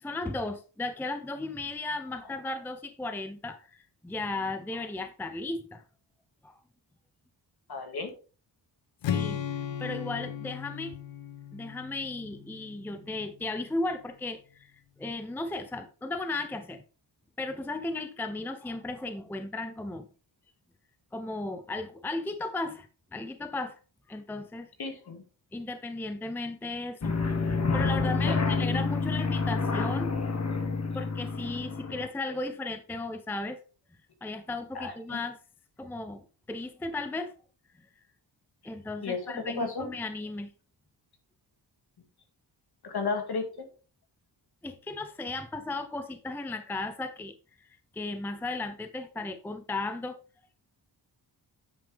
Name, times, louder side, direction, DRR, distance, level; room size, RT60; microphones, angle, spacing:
voice 1, 0.0-5.8 6.4-6.6 9.1-9.4 9.8-11.0 11.5-14.7 15.0-16.8 17.4-20.1 21.1-23.8 24.1-24.7 25.5-27.1 27.4-30.2 30.9-33.6 34.2-35.4 35.8-37.3 37.8-37.9 38.6-40.5 44.6-50.2, left 2 dB, 5° left, 0.5 m, -35 dB
voice 2, 7.7-8.1 24.8-25.2 28.2-28.5 34.7-35.2 39.0-39.9 42.8-43.7, left 4 dB, 60° left, 2.0 m, -33 dB
Strum, 9.0-13.1, left 8 dB, 80° left, 0.9 m, -36 dB
sound 1, 27.0-32.1, left 4 dB, 35° left, 1.4 m, -28 dB
9.0 x 5.1 x 3.4 m
wide cardioid pair, 105°, 44 cm